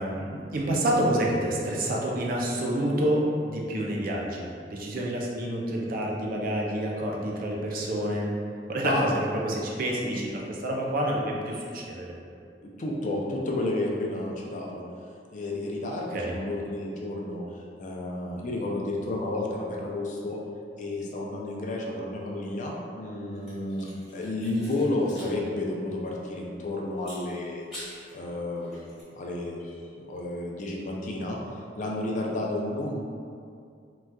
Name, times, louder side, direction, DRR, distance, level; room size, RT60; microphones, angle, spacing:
voice 1, 0.0-8.3 8.7-12.1 16.1-16.3, right 1 dB, 55° right, -2 dB, 0.5 m, -28 dB
voice 2, 12.6-14.8 15.3-20.4 20.8-27.6 28.1-28.7 29.1-31.4 31.8-33.0, left 2 dB, 45° left, -2 dB, 0.4 m, -31 dB
sound 1, 23.3-25.4 25.6-25.7 27.0-28.1 28.6-29.0, equal, 5° right, 1.2 m, -46 dB
3.9 x 2.3 x 2.2 m, 2.3 s
head